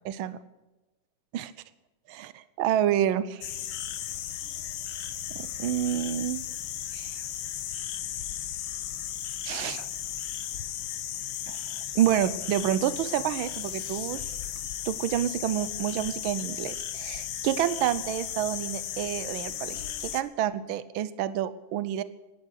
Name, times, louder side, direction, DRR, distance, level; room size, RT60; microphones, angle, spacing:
voice 1, 0.0-0.4 1.3-1.5 2.1-3.6 5.3-6.4 6.9-7.1 9.4-9.9 11.5-11.6 11.9-14.3 14.8-22.0, right 11 dB, 80° right, 15 dB, 1.5 m, -28 dB
sound 1, 3.4-20.2, left 11 dB, 75° left, 1.6 m, -35 dB
18.0 x 11.5 x 6.5 m, 1.1 s
omnidirectional pair, 2.3 m